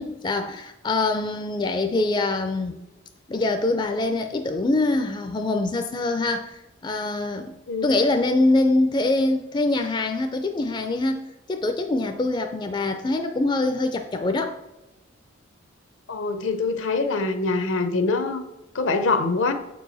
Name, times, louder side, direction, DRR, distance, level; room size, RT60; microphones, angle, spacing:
voice 1, 0.0-2.8 3.3-7.6 7.8-11.2 11.5-14.6, left 2 dB, 25° left, 6 dB, 0.4 m, -24 dB
voice 2, 16.1-18.4 18.7-19.5, left 3 dB, 70° left, 9 dB, 0.7 m, -24 dB
6.9 x 4.6 x 4.1 m, 0.98 s
head